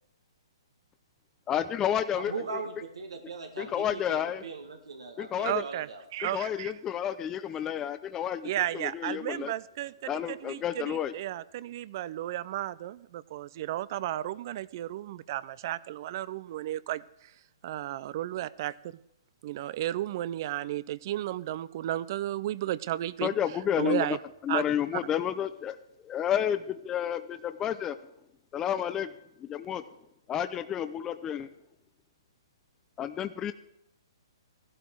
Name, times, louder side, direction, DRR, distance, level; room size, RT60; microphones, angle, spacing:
voice 1, 1.5-2.3 3.6-4.4 5.2-5.6 6.3-9.5 10.1-11.1 23.2-24.2 24.4-25.8 26.0-28.0 28.5-29.1 29.4-29.8 30.3-31.5 33.0-33.5, left 9 dB, 20° left, 11 dB, 0.6 m, -30 dB
voice 2, 2.2-6.0, right 4 dB, 90° right, 4 dB, 2.0 m, -40 dB
voice 3, 5.4-6.7 8.4-17.0 17.6-18.7 19.4-23.3 23.8-24.2 24.5-24.6, right 13 dB, 45° right, 20 dB, 0.5 m, -33 dB
15.5 x 12.0 x 4.6 m, 0.78 s
hypercardioid pair, 145°, 3 cm